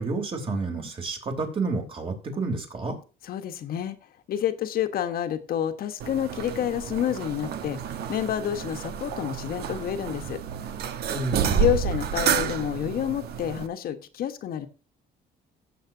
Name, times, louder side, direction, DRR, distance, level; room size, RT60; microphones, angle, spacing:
voice 1, 0.0-3.0 11.1-11.7, right 3 dB, 35° right, 3 dB, 3.5 m, -30 dB
voice 2, 3.2-4.0 4.3-7.8 8.1-10.4 11.5-14.7, left 10 dB, 60° left, 8 dB, 1.4 m, -28 dB
sound 1, 6.0-13.7, right 7 dB, 70° right, 1.2 m, -30 dB
15.5 x 7.3 x 2.8 m, 0.34 s
cardioid pair, 110°, 17 cm